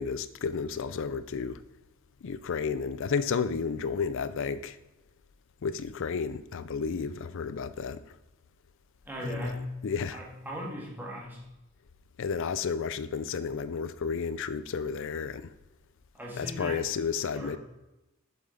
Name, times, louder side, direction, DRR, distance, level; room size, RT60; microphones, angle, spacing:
voice 1, 0.0-1.6 2.2-4.8 5.6-8.0 9.2-9.5 9.8-10.2 12.2-15.5 16.4-17.6, left 5 dB, 60° left, 0.4 m, -32 dB
voice 2, 9.1-9.7 10.1-11.4 16.1-16.8 17.3-17.6, left 1 dB, 10° right, 1.7 m, -37 dB
7.5 x 7.1 x 3.8 m
head